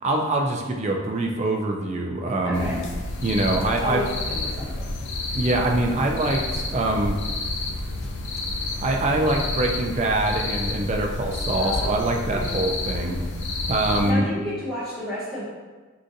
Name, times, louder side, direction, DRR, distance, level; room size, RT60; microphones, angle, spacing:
voice 1, 0.0-2.7 3.2-4.0 5.3-7.2 8.8-13.2 13.7-14.3, right 2 dB, 35° right, 2 dB, 0.3 m, -24 dB
voice 2, 2.4-2.8 3.6-4.9 11.6-12.8 14.0-15.4, left 1 dB, ahead, -17 dB, 1.1 m, -32 dB
sound 1, 2.5-14.1, left 2 dB, 60° left, 0.3 m, -30 dB
3.8 x 2.4 x 2.6 m, 1.3 s
head